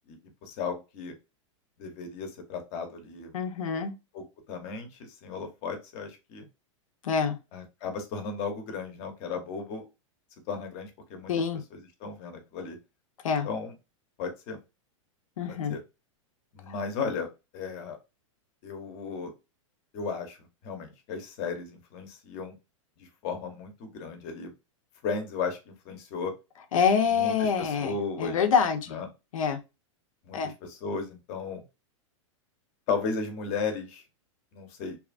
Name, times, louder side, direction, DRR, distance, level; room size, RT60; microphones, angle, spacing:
voice 1, 0.4-1.1 1.8-3.3 4.1-4.9 5.2-6.5 7.5-9.8 10.5-11.3 11.7-12.8 13.4-13.7 14.2-14.6 15.5-15.8 16.5-17.3 17.5-18.0 18.6-19.3 19.9-20.4 20.6-22.6 23.2-24.5 25.0-26.3 27.1-28.4 28.9-29.1 30.3-31.6 32.9-34.0 34.5-35.0, left 5 dB, 40° left, 5 dB, 0.8 m, -35 dB
voice 2, 3.3-3.9 7.0-7.4 11.3-11.6 13.2-13.5 15.4-15.8 16.7-16.8 26.7-27.9 28.2-29.0 29.3-29.6 30.3-30.5, left 6 dB, 85° left, 8 dB, 0.7 m, -26 dB
2.8 x 2.4 x 2.4 m, 0.26 s
hypercardioid pair, 135°, 17 cm